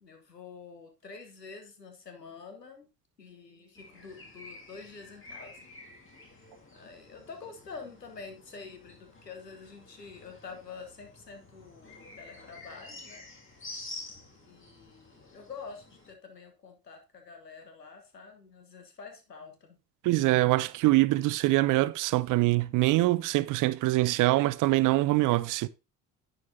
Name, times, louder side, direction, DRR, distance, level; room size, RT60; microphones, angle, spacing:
voice 1, 0.0-2.9 3.2-5.6 6.7-13.2 14.3-19.8, left 5 dB, 90° left, 1.2 m, -47 dB
sound 1, 3.7-16.1, left 2 dB, 25° left, 2.2 m, -49 dB
voice 2, 20.0-25.7, right 19 dB, 45° right, 0.5 m, -24 dB
10.5 x 7.7 x 2.7 m
figure-of-eight pair, 55°, 47 cm